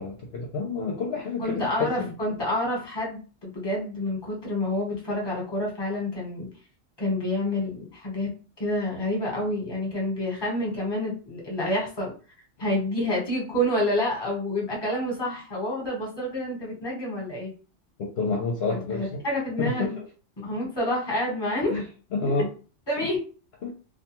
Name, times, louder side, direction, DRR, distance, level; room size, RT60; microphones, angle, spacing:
voice 1, 0.0-2.1 18.0-19.2 19.6-20.0 21.7-21.9 22.1-22.5 23.0-23.1 23.6-23.7, left 3 dB, 65° left, -1 dB, 0.8 m, -29 dB
voice 2, 1.4-6.5 7.0-8.3 8.6-12.1 12.6-17.5 18.7-20.0 20.4-21.7 22.9-23.2, left 1 dB, 20° left, -2 dB, 1.0 m, -28 dB
2.4 x 2.2 x 2.9 m, 0.37 s
omnidirectional pair, 1.2 m